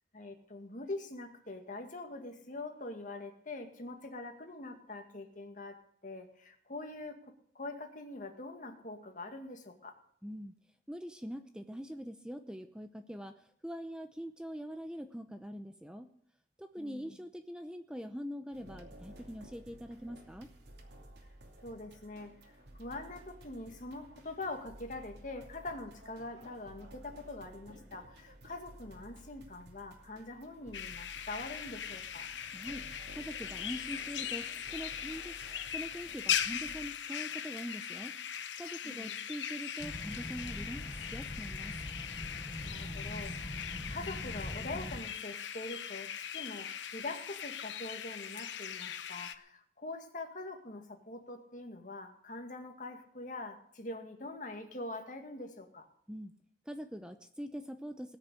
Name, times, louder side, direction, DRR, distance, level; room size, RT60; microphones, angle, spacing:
voice 1, 0.1-9.9 16.8-17.2 21.6-32.3 38.8-39.2 42.6-55.9, left 2 dB, 45° left, 4 dB, 2.0 m, -44 dB
voice 2, 10.2-10.5 10.9-16.1 16.6-20.5 32.5-32.8 33.1-35.3 35.7-38.1 38.6-41.7 56.1-56.3 56.7-58.2, equal, 5° right, 7 dB, 0.7 m, -43 dB
sound 1, 18.5-36.9, right 1 dB, 70° right, 2.7 m, -54 dB
sound 2, 30.7-49.4, left 9 dB, 90° left, 0.9 m, -40 dB
sound 3, 39.8-45.0, left 1 dB, 25° left, 1.0 m, -43 dB
19.5 x 6.6 x 8.5 m, 0.65 s
head